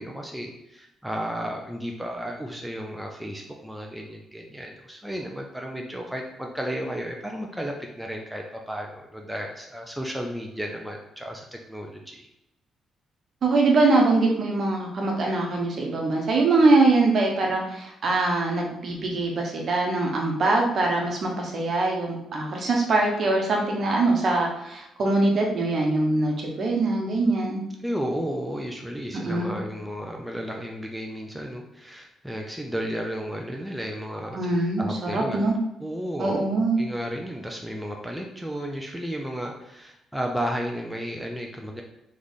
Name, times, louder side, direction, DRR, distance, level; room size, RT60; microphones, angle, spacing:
voice 1, 0.0-12.2 27.8-34.4 34.8-35.4 35.8-41.8, equal, 5° right, 1 dB, 0.6 m, -33 dB
voice 2, 13.4-27.6 29.2-29.5 34.3-34.8 35.1-35.5 36.2-36.8, right 2 dB, 50° right, 0 dB, 1.1 m, -23 dB
3.3 x 3.2 x 4.0 m, 0.85 s
cardioid pair, 90°, 0 cm